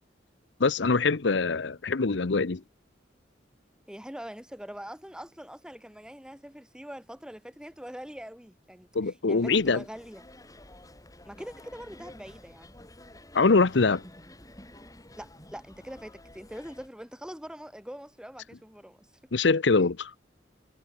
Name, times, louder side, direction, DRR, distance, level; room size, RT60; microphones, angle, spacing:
voice 1, 0.6-2.6 8.9-9.8 13.3-14.0 19.3-20.1, left 4 dB, 75° left, 0.8 m, -23 dB
voice 2, 3.9-10.2 11.2-12.7 15.2-19.1, equal, 5° right, 3.1 m, -43 dB
sound 1, 9.4-16.9, left 1 dB, 20° left, 4.2 m, -51 dB
head